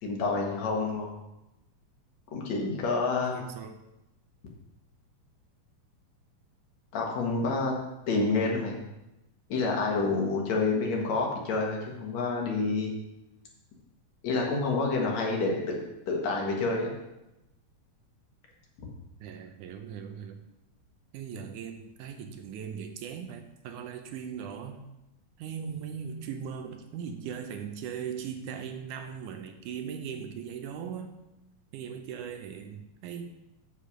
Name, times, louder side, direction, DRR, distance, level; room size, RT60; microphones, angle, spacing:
voice 1, 0.0-1.1 2.3-3.4 6.9-7.7 8.1-8.8 9.5-12.9 14.2-16.9, left 3 dB, 60° left, -1 dB, 2.5 m, -28 dB
voice 2, 3.2-3.8 19.2-20.4 21.1-24.8 25.4-31.2 31.7-33.3, right 7 dB, 80° right, 6 dB, 2.1 m, -39 dB
8.5 x 6.6 x 4.9 m, 0.92 s
omnidirectional pair, 3.8 m